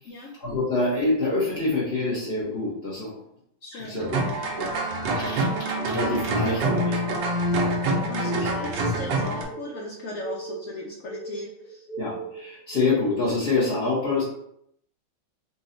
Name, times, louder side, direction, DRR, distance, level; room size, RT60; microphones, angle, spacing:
voice 1, 0.4-3.2 3.7-4.2 4.5-4.8 5.1-5.4 5.8-7.2 8.2-8.5 12.0-14.2, left 3 dB, 40° left, -8 dB, 1.0 m, -26 dB
voice 2, 3.6-4.1 8.1-11.9, left 2 dB, 85° left, -2 dB, 0.7 m, -37 dB
sound 1, 4.0-9.4, right 1 dB, 75° right, 1.4 m, -26 dB
sound 2, 8.5-13.4, right 4 dB, 65° left, 1.6 m, -39 dB
4.2 x 2.3 x 3.8 m, 0.72 s
omnidirectional pair, 2.1 m